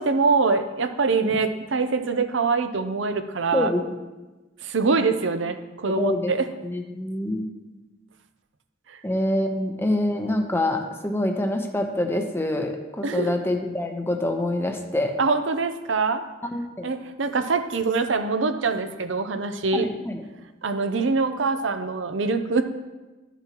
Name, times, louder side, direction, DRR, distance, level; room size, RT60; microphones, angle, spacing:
voice 1, 0.0-3.7 4.6-6.5 8.9-9.0 13.0-13.3 15.2-16.2 16.8-19.9 20.6-22.6, right 4 dB, 75° right, 8 dB, 0.7 m, -24 dB
voice 2, 5.9-6.3 6.6-7.5 9.0-15.1 16.5-16.9 19.7-20.2, left 1 dB, 10° left, 3 dB, 0.8 m, -26 dB
13.5 x 6.9 x 3.0 m, 1.2 s
head